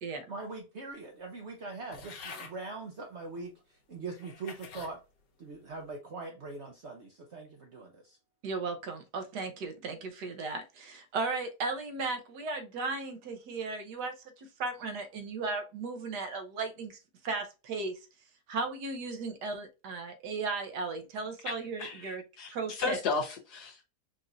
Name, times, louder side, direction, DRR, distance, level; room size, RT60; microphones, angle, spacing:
voice 1, 0.3-3.5 3.9-5.0 5.4-8.2, right 3 dB, 55° right, 0.8 m, -42 dB
sound 1, 1.9-2.6 3.4-3.5 4.1-4.9 5.5-5.9, left 4 dB, 85° left, 1.6 m, -46 dB
voice 2, 8.4-17.0 17.2-17.9 18.5-22.2 22.5-23.0, right 3 dB, 75° right, 1.4 m, -36 dB
voice 3, 21.8-23.8, left 4 dB, 70° left, 1.8 m, -34 dB
5.0 x 2.5 x 2.6 m
omnidirectional pair, 1.8 m